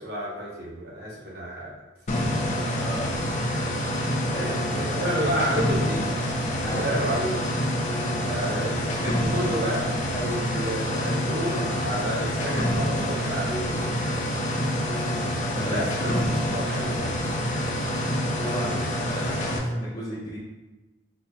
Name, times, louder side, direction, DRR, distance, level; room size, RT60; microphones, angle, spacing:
voice 1, 0.0-1.7 2.4-2.8 4.4-6.1 6.7-7.7 8.3-14.0 14.7-15.0 15.7-17.1, equal, 55° right, -5 dB, 1.1 m, -31 dB
sound 1, 2.1-19.6, equal, 40° left, 0.5 m, -27 dB
voice 2, 2.7-3.4 4.3-5.5 6.6-7.1 8.4-8.7 15.5-15.9 18.4-20.4, equal, 20° left, -9 dB, 1.0 m, -34 dB
3.9 x 3.1 x 2.3 m, 1.1 s
head